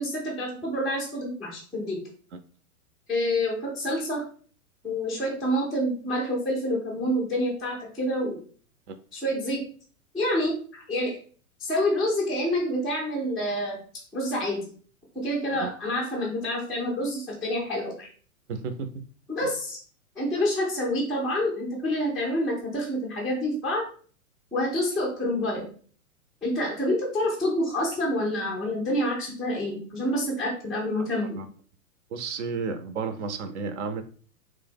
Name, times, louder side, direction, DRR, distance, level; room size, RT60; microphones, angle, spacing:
voice 1, 0.0-2.0 3.1-4.2 4.8-8.4 9.1-9.6 10.1-11.2 11.6-14.6 15.1-18.1 19.3-19.8 20.2-23.8 24.5-25.7 26.4-31.4, left 1 dB, ahead, -5 dB, 0.3 m, -27 dB
voice 2, 18.5-18.9 31.2-31.5 32.1-34.0, right 5 dB, 55° right, 9 dB, 0.5 m, -32 dB
3.2 x 2.1 x 3.3 m, 0.43 s
figure-of-eight pair, 105°, 42 cm